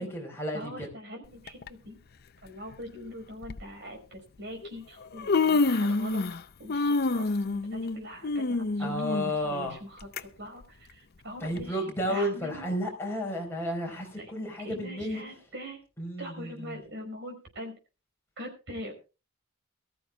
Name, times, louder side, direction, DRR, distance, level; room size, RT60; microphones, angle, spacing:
voice 1, 0.0-0.7 8.8-9.7 11.4-15.2 16.0-16.8, equal, 10° left, -1 dB, 4.6 m, -32 dB
voice 2, 0.5-2.0 2.4-6.2 6.6-12.7 14.2-14.3 14.6-15.8 16.2-17.7 18.4-18.9, equal, 60° right, 3 dB, 5.2 m, -43 dB
Human voice, 1.5-1.7 2.7-2.8 3.4-3.6 4.6-4.7 5.0-6.4 6.7-10.2 10.6-10.7 11.6-11.7, left 3 dB, 50° left, 0.6 m, -27 dB
22.5 x 14.0 x 2.4 m, 0.31 s
head